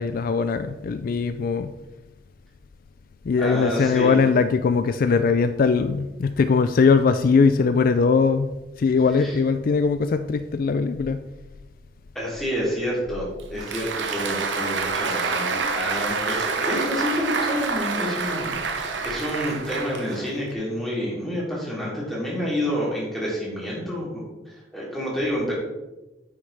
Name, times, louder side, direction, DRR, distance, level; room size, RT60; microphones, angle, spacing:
voice 1, 0.0-1.7 3.3-8.5 8.8-11.2, left 5 dB, 50° left, 0.3 m, -20 dB
voice 2, 3.4-4.2 9.2-9.3 12.1-25.5, equal, ahead, 3.1 m, -28 dB
Applause, 13.4-20.5, right 4 dB, 80° right, 0.9 m, -27 dB
9.3 x 6.4 x 3.4 m
head